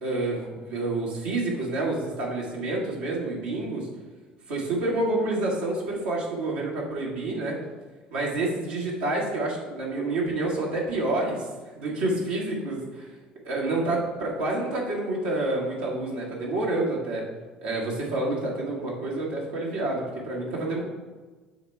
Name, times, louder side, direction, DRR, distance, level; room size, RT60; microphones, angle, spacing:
voice 1, 0.0-3.9 4.5-7.5 8.1-11.5 11.8-13.1 13.4-17.3 17.6-20.8, right 2 dB, 75° right, -4 dB, 1.5 m, -28 dB
7.5 x 3.3 x 4.5 m, 1.3 s
figure-of-eight pair, 55°, 5 cm